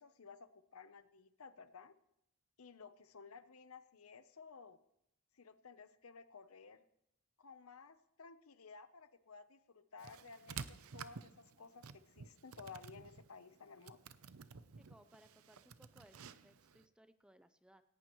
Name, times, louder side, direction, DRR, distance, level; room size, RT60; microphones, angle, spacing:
voice 1, 0.0-1.9 2.6-4.8 5.3-6.9 7.4-14.0, left 5 dB, 85° left, 12 dB, 0.9 m, -56 dB
sound 1, 10.0-16.9, right 6 dB, 85° right, 0.7 m, -52 dB
voice 2, 14.8-17.8, right 1 dB, 5° right, 10 dB, 0.5 m, -65 dB
17.5 x 17.0 x 3.1 m, 0.80 s
head